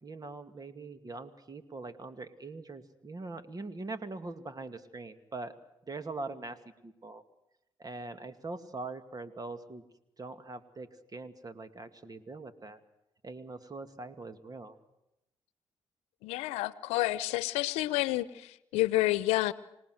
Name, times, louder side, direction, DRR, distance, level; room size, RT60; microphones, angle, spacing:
voice 1, 0.0-5.5 5.9-7.2 7.8-9.8 10.2-12.8 13.2-14.8, right 3 dB, 35° right, 10 dB, 2.4 m, -42 dB
voice 2, 16.2-19.5, left 18 dB, 90° left, 18 dB, 0.8 m, -29 dB
26.0 x 19.0 x 7.9 m, 0.85 s
supercardioid pair, 55°, 11 cm